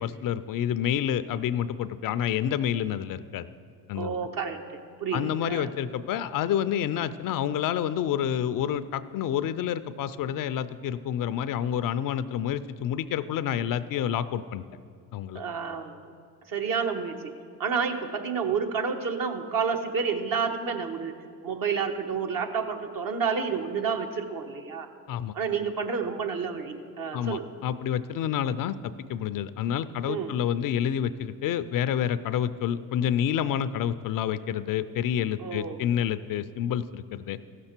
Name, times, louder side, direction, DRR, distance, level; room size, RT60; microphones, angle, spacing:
voice 1, 0.0-3.5 3.9-4.3 5.1-14.6 15.1-15.4 25.1-25.3 27.1-28.7 29.1-37.4, left 9 dB, 50° left, 14 dB, 0.5 m, -28 dB
voice 2, 3.9-5.7 15.3-16.0 16.5-17.2 17.6-21.1 21.4-24.9 25.3-27.5 30.1-30.3 35.4-35.8, right 6 dB, 50° right, 4 dB, 1.2 m, -30 dB
15.5 x 6.8 x 4.4 m, 2.3 s
hypercardioid pair, 60°, 42 cm